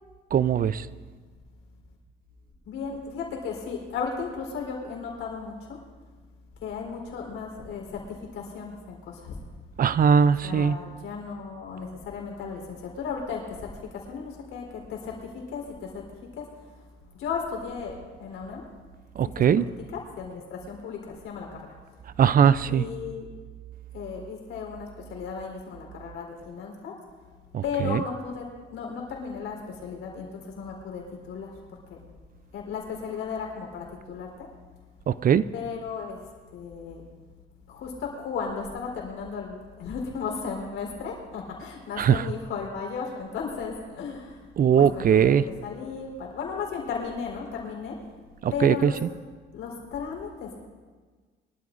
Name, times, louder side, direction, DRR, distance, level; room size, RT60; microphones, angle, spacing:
voice 1, 0.3-0.9 9.8-10.8 19.2-19.7 22.2-22.9 27.5-28.0 35.1-35.4 42.0-42.2 44.6-45.4 48.4-48.9, right 8 dB, 45° right, 0.5 m, -20 dB
voice 2, 2.6-5.8 6.6-9.4 10.4-16.5 17.1-18.6 19.4-21.7 22.7-23.3 23.9-26.9 27.6-28.5 28.7-32.0 32.5-34.5 35.5-36.2 36.5-37.0 37.7-44.4 44.7-45.3 45.6-48.0 48.5-49.0 49.5-50.7, left 5 dB, 90° left, 3.9 m, -35 dB
23.5 x 13.0 x 2.6 m
cardioid pair, 90°, 20 cm